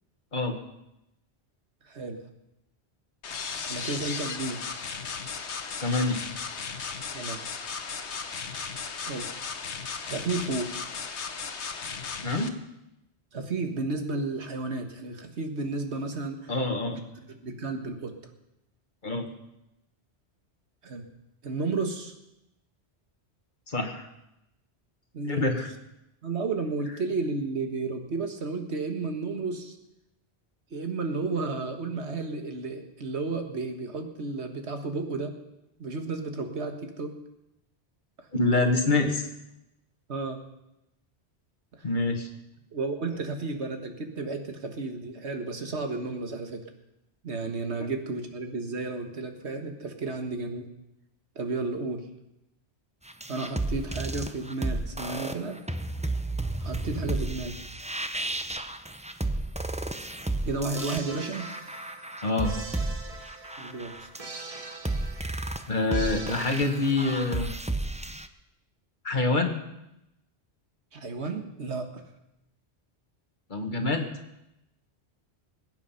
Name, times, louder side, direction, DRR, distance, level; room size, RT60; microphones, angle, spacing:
voice 1, 1.9-2.2 3.6-4.6 7.1-7.4 9.0-9.3 10.0-10.7 13.3-16.5 16.9-17.0 17.3-18.1 20.8-21.0 21.4-22.1 25.1-25.5 26.2-29.8 30.7-35.3 35.8-37.1 38.2-38.3 40.1-40.4 42.7-46.7 47.2-50.7 51.4-52.1 53.3-55.6 56.6-57.6 60.5-61.5 63.6-64.1 70.9-72.0, right 3 dB, 80° right, 5 dB, 1.8 m, -32 dB
sound 1, 3.2-12.5, left 5 dB, 90° left, 1.3 m, -36 dB
voice 2, 5.8-6.2 12.2-12.5 16.5-17.0 19.0-19.3 23.7-24.1 25.3-25.7 38.3-39.3 41.8-42.3 62.2-62.5 65.7-67.5 69.0-69.6 73.5-74.1, left 2 dB, 45° left, 5 dB, 1.6 m, -26 dB
sound 2, 53.1-68.3, right 2 dB, 10° right, 0.4 m, -33 dB
sound 3, 60.8-67.6, right 3 dB, 35° right, 1.2 m, -43 dB
21.0 x 9.0 x 5.7 m, 0.88 s
omnidirectional pair, 1.1 m